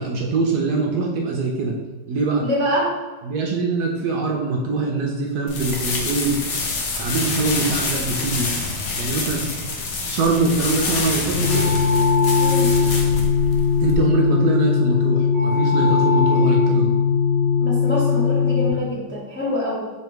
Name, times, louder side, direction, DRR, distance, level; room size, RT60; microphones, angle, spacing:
voice 1, 0.0-1.8 2.1-2.4 3.2-6.4 7.0-8.5 9.0-9.5 10.1-11.8 13.8-17.0, right 3 dB, 70° right, 0 dB, 1.0 m, -23 dB
voice 2, 2.4-2.9 12.4-12.7 17.6-19.9, left 1 dB, 15° left, -6 dB, 0.3 m, -25 dB
sound 1, 5.5-13.9, left 3 dB, 85° left, 0.6 m, -27 dB
sound 2, 11.3-18.7, left 5 dB, 40° left, 1.2 m, -19 dB
3.3 x 3.3 x 4.6 m, 1.3 s
omnidirectional pair, 2.1 m